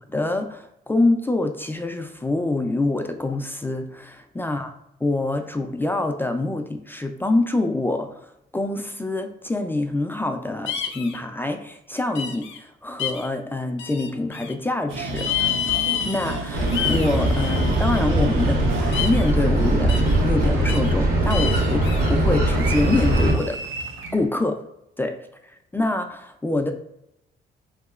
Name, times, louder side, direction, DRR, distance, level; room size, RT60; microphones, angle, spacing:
voice 1, 0.1-4.7 5.0-15.3 16.0-20.0 20.2-23.6 24.1-24.6 25.0-25.1 25.7-26.7, left 2 dB, 10° left, 5 dB, 0.3 m, -25 dB
sound 1, 10.7-11.2 12.1-12.6 13.0-13.3 13.8-14.5 15.2-16.4 16.7-18.0 18.9-19.3 19.9-20.2 20.7-20.9 21.3-22.1, left 9 dB, 70° left, 0.5 m, -29 dB
sound 2, 14.9-24.2, right 2 dB, 80° right, 0.6 m, -33 dB
sound 3, 16.5-23.3, right 1 dB, 50° right, 0.9 m, -21 dB
3.0 x 2.8 x 2.3 m, 0.80 s
cardioid pair, 90°, 20 cm